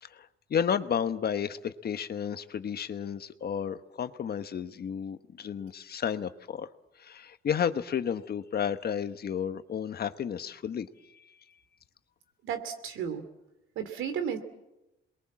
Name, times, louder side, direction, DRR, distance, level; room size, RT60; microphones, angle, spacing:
voice 1, 0.0-6.7 7.0-10.9, left 8 dB, 50° left, 11 dB, 1.2 m, -32 dB
voice 2, 12.4-13.2 13.7-14.4, right 8 dB, 85° right, 8 dB, 3.0 m, -33 dB
28.5 x 22.0 x 7.5 m, 0.96 s
cardioid pair, 90°, 20 cm